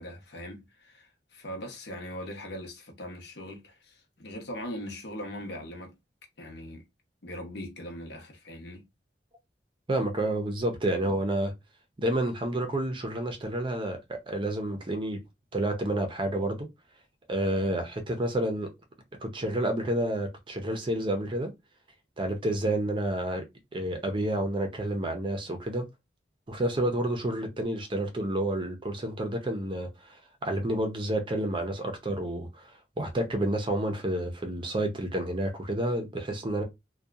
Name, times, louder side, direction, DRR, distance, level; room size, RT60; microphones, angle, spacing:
voice 1, 0.0-5.9 6.4-6.8 7.2-8.8, equal, 65° left, 0.8 m, -40 dB
voice 2, 9.9-11.5 12.0-15.2 15.5-16.7 17.3-18.7 19.2-21.5 22.2-23.4 23.7-25.9 26.5-32.7 33.0-36.6, right 1 dB, 30° right, 0.6 m, -29 dB
2.7 x 2.2 x 2.3 m
head